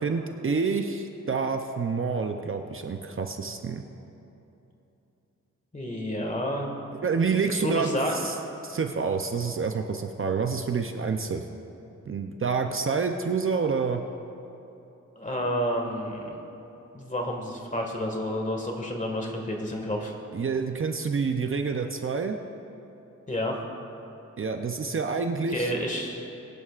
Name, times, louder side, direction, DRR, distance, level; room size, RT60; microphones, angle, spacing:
voice 1, 0.0-3.8 7.0-8.4 8.6-11.4 12.1-14.0 20.3-22.4 24.4-25.7, right 5 dB, 45° right, 5 dB, 0.6 m, -28 dB
voice 2, 5.7-6.7 7.4-8.1 12.6-12.8 15.2-16.4 16.9-20.1 23.3-23.6 25.5-26.2, equal, 25° left, 1 dB, 1.8 m, -30 dB
22.5 x 11.0 x 2.5 m, 3.0 s
wide cardioid pair, 135°, 30 cm